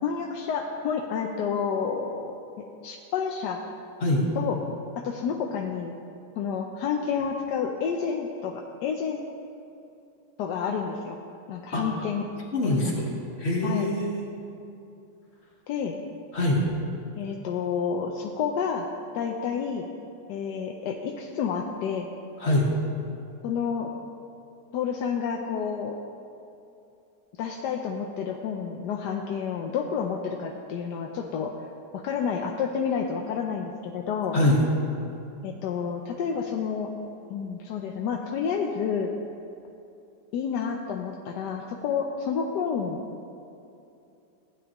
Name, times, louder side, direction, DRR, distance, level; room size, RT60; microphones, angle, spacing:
voice 1, 0.0-2.3 2.8-3.6 4.4-4.6 5.0-5.9 6.4-9.2 10.4-11.2 11.5-12.2 12.6-13.0 13.6-13.9 15.7-16.0 17.2-18.9 19.1-19.9 20.3-22.1 23.4-23.9 24.7-25.9 27.4-31.5 31.9-34.4 35.4-36.9 37.3-39.1 40.3-43.0, left 6 dB, 80° left, 1 dB, 1.2 m, -29 dB
voice 2, 12.5-13.1 13.4-14.2 16.3-16.7 22.4-22.8 34.3-34.6, left 1 dB, 40° left, -2 dB, 1.4 m, -23 dB
15.5 x 9.5 x 3.0 m, 2.7 s
omnidirectional pair, 1.8 m